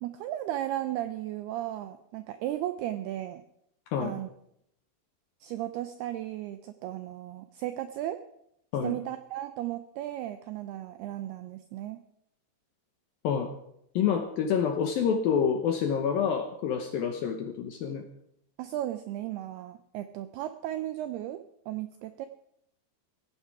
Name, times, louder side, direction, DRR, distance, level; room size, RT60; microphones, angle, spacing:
voice 1, 0.0-3.4 4.0-4.3 5.4-8.2 8.8-12.0 18.6-21.4 21.7-22.3, right 13 dB, 85° right, 10 dB, 2.3 m, -35 dB
voice 2, 13.9-18.0, left 7 dB, 75° left, 5 dB, 2.2 m, -27 dB
17.5 x 15.0 x 4.8 m, 0.75 s
omnidirectional pair, 5.4 m